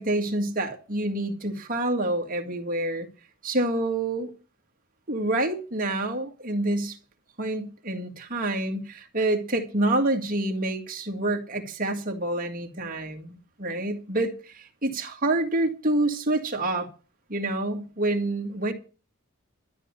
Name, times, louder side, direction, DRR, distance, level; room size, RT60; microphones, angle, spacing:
voice 1, 0.0-3.1 3.4-4.3 5.1-7.0 7.4-16.9 17.3-18.7, right 2 dB, 40° right, 2.1 m, -27 dB
13.0 x 9.4 x 6.7 m
head